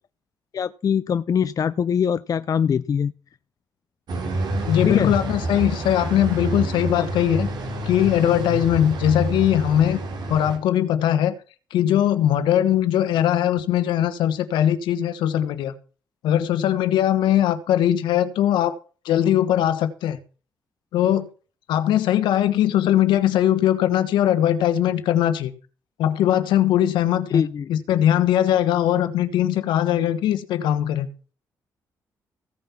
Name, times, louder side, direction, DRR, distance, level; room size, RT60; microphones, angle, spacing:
voice 1, 0.5-3.1 4.8-5.1 6.9-7.1 27.3-27.7, left 7 dB, 50° left, 0.5 m, -23 dB
sound 1, 4.1-10.6, right 1 dB, 70° right, 3.5 m, -28 dB
voice 2, 4.7-7.5 7.8-10.0 10.3-11.3 11.7-15.7 16.2-18.7 19.0-20.2 20.9-21.3 21.7-25.5 26.0-27.4 27.7-31.1, left 11 dB, 85° left, 1.3 m, -20 dB
16.0 x 5.5 x 7.2 m
supercardioid pair, 60°, 8 cm